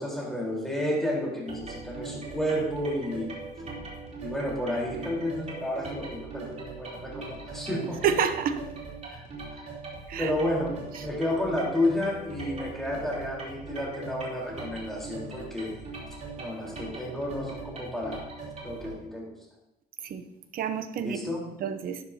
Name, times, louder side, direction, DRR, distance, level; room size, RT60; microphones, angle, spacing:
voice 1, 0.0-3.3 4.2-8.0 9.1-9.2 9.5-9.7 10.2-15.8 16.4-18.3 18.6-19.3 21.0-21.5, left 1 dB, ahead, -4 dB, 4.0 m, -31 dB
sound 1, 1.5-18.9, right 3 dB, 40° right, 3.5 m, -40 dB
voice 2, 8.0-8.6 10.1-10.3 20.0-20.2 20.5-21.2 21.6-22.0, right 7 dB, 60° right, 10 dB, 0.9 m, -28 dB
11.5 x 10.0 x 2.8 m, 0.88 s
cardioid pair, 110°, 17 cm